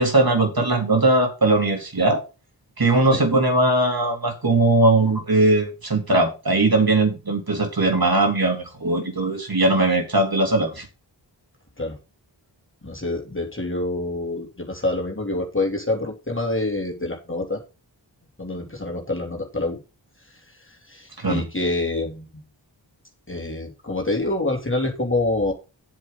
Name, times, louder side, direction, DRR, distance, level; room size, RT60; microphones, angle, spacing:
voice 1, 0.0-2.2 2.8-10.9 21.2-21.5, right 2 dB, 50° right, 4 dB, 3.2 m, -19 dB
voice 2, 12.8-17.6 18.4-19.8 20.7-22.3 23.3-25.5, left 2 dB, 25° left, 0 dB, 2.9 m, -26 dB
9.8 x 7.8 x 3.9 m, 0.30 s
wide cardioid pair, 40°, 46 cm